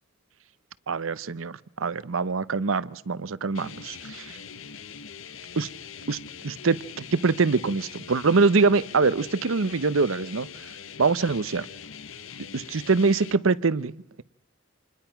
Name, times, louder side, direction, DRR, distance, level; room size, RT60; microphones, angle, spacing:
voice 1, 0.9-4.4 5.6-5.7 6.1-6.2 6.4-10.5 11.0-11.7 12.5-14.2, right 4 dB, 85° right, 0.7 m, -24 dB
sound 1, 3.5-13.3, left 7 dB, 80° left, 0.9 m, -42 dB
27.0 x 21.0 x 5.8 m
head